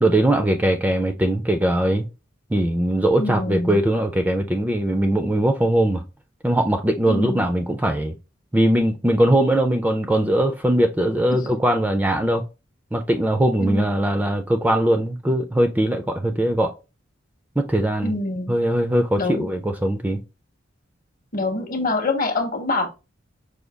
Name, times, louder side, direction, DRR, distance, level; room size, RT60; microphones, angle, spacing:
voice 1, 0.0-2.1 2.5-6.0 6.4-8.1 8.5-12.4 12.9-16.7 17.6-18.1 18.5-20.2, right 1 dB, 10° right, 0.3 m, -20 dB
voice 2, 3.2-3.8 7.1-7.5 11.3-11.5 13.6-14.1 18.0-18.6 19.2-19.5 21.3-22.9, left 2 dB, 45° left, 0.7 m, -25 dB
5.0 x 2.3 x 3.3 m
head